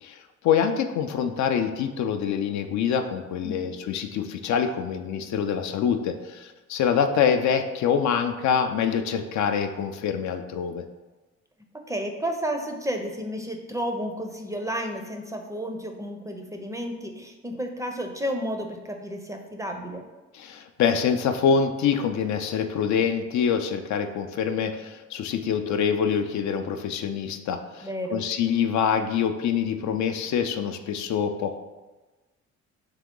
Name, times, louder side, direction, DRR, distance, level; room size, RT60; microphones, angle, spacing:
voice 1, 0.0-10.8 20.3-31.6, left 7 dB, 70° left, 7 dB, 0.4 m, -25 dB
voice 2, 11.9-20.0 27.8-28.2, equal, 10° right, 3 dB, 0.5 m, -32 dB
3.7 x 2.9 x 3.7 m, 1.2 s
cardioid pair, 90°, 30 cm